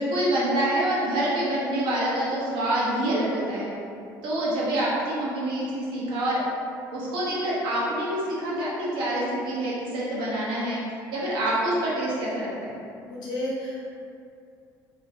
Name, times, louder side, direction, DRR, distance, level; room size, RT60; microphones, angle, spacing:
voice 1, 0.0-3.7 4.2-6.4 6.9-10.8 11.1-12.7, right 1 dB, 75° right, -7 dB, 0.9 m, -26 dB
voice 2, 13.0-13.9, left 1 dB, 60° left, -6 dB, 0.8 m, -32 dB
2.7 x 2.2 x 2.8 m, 2.4 s
supercardioid pair, 90°, 8 cm